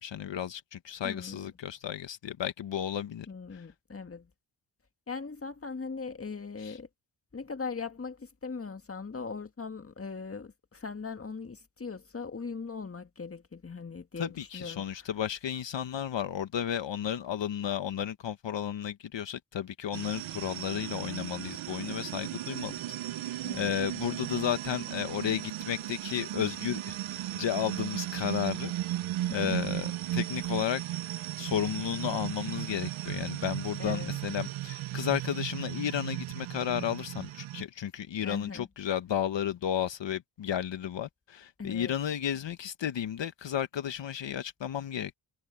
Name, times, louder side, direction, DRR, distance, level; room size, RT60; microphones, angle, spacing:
voice 1, 0.0-3.3 6.6-6.8 14.2-22.7 23.2-28.7 29.3-30.8 31.4-45.2, left 9 dB, 65° left, 1.3 m, -33 dB
voice 2, 1.0-1.6 3.3-4.3 5.1-6.9 7.3-15.2 23.4-23.8 29.3-29.8 33.8-34.2 38.2-38.7 41.6-42.0, left 4 dB, 30° left, 2.0 m, -40 dB
sound 1, 19.9-37.6, right 14 dB, 85° right, 0.8 m, -36 dB
cardioid pair, 55°, 47 cm